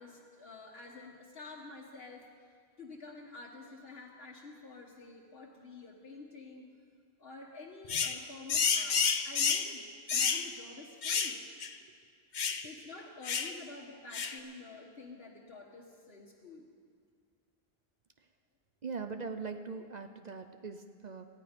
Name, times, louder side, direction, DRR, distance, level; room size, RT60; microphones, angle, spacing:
voice 1, 0.0-2.2 2.8-6.7 7.2-9.8 10.1-11.4 12.6-16.7, left 3 dB, 70° left, -3 dB, 1.5 m, -49 dB
sound 1, 7.9-8.2 8.5-9.7 10.1-10.5 11.0-11.4 11.6-11.7 12.3-12.6 13.2-13.5 14.1-14.4, left 6 dB, 50° left, 0.8 m, -30 dB
voice 2, 18.8-21.3, right 4 dB, 50° right, 7 dB, 0.7 m, -41 dB
19.0 x 14.5 x 5.2 m, 2.1 s
omnidirectional pair, 1.0 m